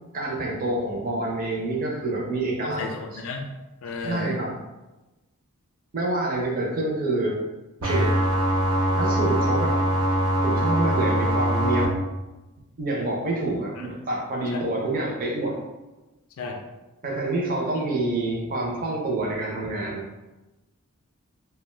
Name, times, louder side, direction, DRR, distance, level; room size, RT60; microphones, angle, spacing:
voice 1, 0.1-2.8 4.0-4.6 5.9-7.4 7.8-8.2 9.0-9.8 10.4-11.9 12.8-15.6 17.0-20.0, right 2 dB, 40° right, -3 dB, 0.5 m, -27 dB
voice 2, 2.6-3.5 3.8-4.5 13.8-13.9 14.5-14.7 16.4-16.6 17.8-17.9, left 3 dB, 65° left, 3 dB, 0.3 m, -33 dB
sound 1, 7.8-11.9, equal, 80° right, 0.7 m, -22 dB
2.4 x 2.1 x 3.1 m, 1.1 s
head